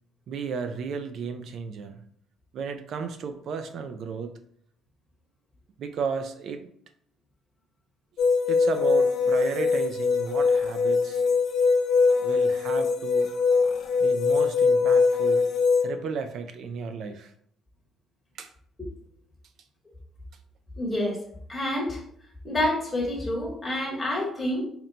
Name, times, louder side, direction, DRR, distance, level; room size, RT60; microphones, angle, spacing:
voice 1, 0.3-2.0 2.5-4.4 5.8-6.7 8.5-11.2 12.2-13.3 14.0-15.5 15.8-17.3 18.3-18.5, right 5 dB, 60° right, 7 dB, 0.3 m, -34 dB
sound 1, 8.2-15.8, left 4 dB, 65° left, 0.6 m, -22 dB
voice 2, 20.8-21.2 21.5-22.0 22.4-24.7, left 1 dB, 15° left, -3 dB, 1.2 m, -28 dB
4.3 x 2.2 x 3.8 m, 0.64 s
cardioid pair, 150°, 0 cm